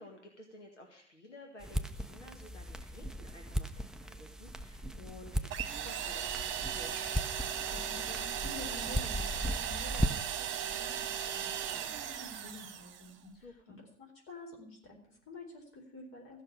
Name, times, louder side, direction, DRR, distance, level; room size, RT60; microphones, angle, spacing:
voice 1, 0.0-7.2 13.4-13.8, left 2 dB, 80° left, 1 dB, 2.1 m, -53 dB
sound 1, 1.6-10.4, equal, ahead, 0.5 m, -38 dB
sound 2, 5.5-13.1, right 9 dB, 30° right, 1.5 m, -37 dB
voice 2, 7.7-16.4, left 2 dB, 35° left, 1 dB, 4.4 m, -50 dB
15.0 x 6.4 x 8.9 m, 0.63 s
figure-of-eight pair, 85°, 35 cm